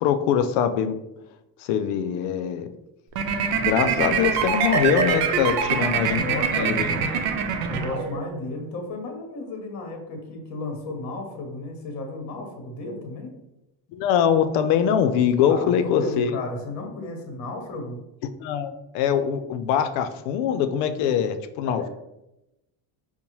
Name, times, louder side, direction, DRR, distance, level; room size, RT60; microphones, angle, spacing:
voice 1, 0.0-1.0 1.6-2.7 3.5-6.2 6.5-7.1 13.9-16.3 18.4-21.9, left 8 dB, 85° left, 9 dB, 0.6 m, -23 dB
sound 1, 3.1-8.4, right 6 dB, 85° right, 0.7 m, -24 dB
voice 2, 5.4-7.1 7.5-13.3 15.5-18.0 21.6-21.9, left 2 dB, 35° left, 3 dB, 0.9 m, -33 dB
5.3 x 2.2 x 3.0 m, 0.91 s
cardioid pair, 155°, 50 cm